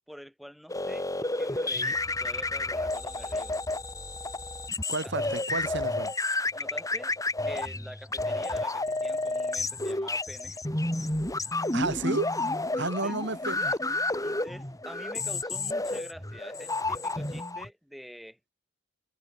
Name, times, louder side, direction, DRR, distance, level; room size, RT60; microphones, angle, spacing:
voice 1, 0.1-3.6 5.0-5.3 6.5-7.1 7.4-10.6 12.7-13.2 13.6-13.8 14.2-18.5, equal, ahead, 3.5 m, -46 dB
sound 1, 0.7-17.7, left 2 dB, 15° left, 3.3 m, -31 dB
voice 2, 4.9-6.1 11.7-12.3 12.8-13.7, right 2 dB, 55° right, 5.5 m, -31 dB
head